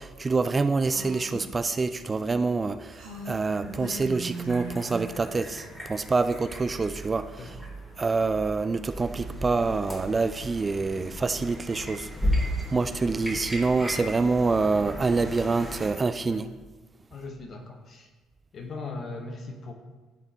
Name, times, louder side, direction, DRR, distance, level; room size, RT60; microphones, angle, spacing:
voice 1, 0.0-7.5 8.0-12.1 12.4-16.5, right 4 dB, 30° right, 10 dB, 0.3 m, -26 dB
Female speech woman speaking, 0.8-1.5 2.9-5.2, right 3 dB, 85° right, 1.2 m, -38 dB
sound 1, 3.1-15.6, equal, 10° left, 2.2 m, -44 dB
sound 2, 8.9-15.9, left 1 dB, 15° right, 1.5 m, -34 dB
voice 2, 17.1-18.1 18.5-19.7, left 3 dB, 50° left, 3 dB, 1.1 m, -39 dB
11.0 x 4.0 x 2.9 m, 1.3 s
hypercardioid pair, 50°, 0 cm